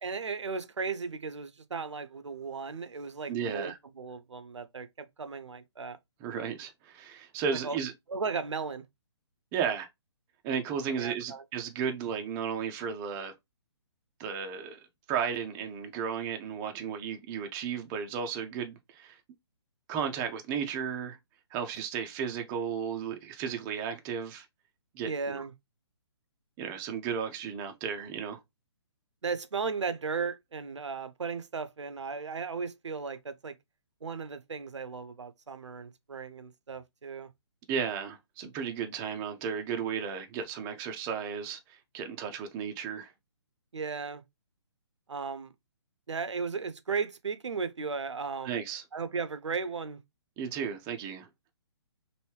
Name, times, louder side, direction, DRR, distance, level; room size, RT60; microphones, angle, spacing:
voice 1, 0.0-6.0 7.6-7.8 8.1-8.8 10.9-11.4 25.0-25.5 29.2-33.6 34.0-37.3 43.7-44.2 45.1-45.5 46.1-48.6 48.9-50.0, right 5 dB, 85° right, 0.5 m, -36 dB
voice 2, 3.3-3.8 6.2-7.9 9.5-9.9 10.4-13.3 14.2-19.2 19.9-21.2 21.5-24.5 24.9-25.4 26.6-28.4 37.7-43.1 48.4-48.8 50.4-51.5, right 7 dB, 15° right, 0.4 m, -34 dB
3.1 x 2.6 x 3.1 m
figure-of-eight pair, 140°, 15 cm